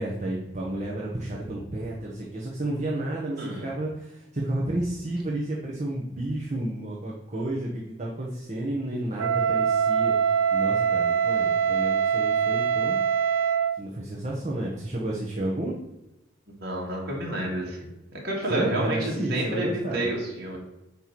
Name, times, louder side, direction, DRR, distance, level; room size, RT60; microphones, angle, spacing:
voice 1, 0.0-13.0 13.8-15.7 18.5-20.1, right 1 dB, 35° right, -3 dB, 1.1 m, -31 dB
voice 2, 3.4-3.7 16.6-17.9 18.2-20.6, right 1 dB, 55° right, -3 dB, 2.3 m, -29 dB
Wind instrument woodwind instrument, 9.2-13.8, right 7 dB, 90° right, 0.6 m, -23 dB
9.0 x 3.1 x 5.9 m, 0.96 s
head